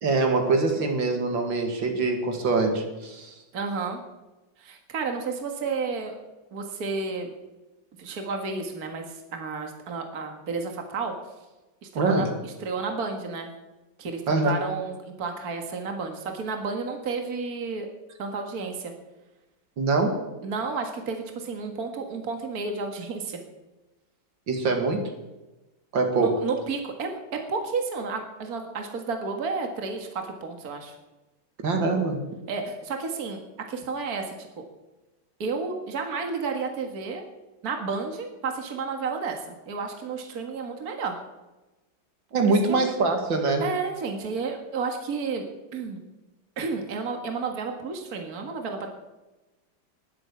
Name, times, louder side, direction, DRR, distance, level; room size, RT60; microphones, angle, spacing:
voice 1, 0.0-3.3 11.9-12.3 14.3-14.5 19.8-20.2 24.5-25.0 25.9-26.4 31.6-32.2 42.3-43.7, right 3 dB, 70° right, 4 dB, 2.6 m, -24 dB
voice 2, 3.5-4.0 4.6-6.2 6.5-7.3 8.0-11.1 11.8-13.5 14.0-17.9 18.2-18.9 20.4-23.4 26.1-30.9 32.5-33.4 33.7-34.6 35.4-37.2 37.6-41.2 42.4-42.9 43.6-45.4 45.7-46.0 46.6-48.9, right 4 dB, 50° right, 4 dB, 2.2 m, -31 dB
20.0 x 8.1 x 7.2 m, 1.1 s
omnidirectional pair, 2.1 m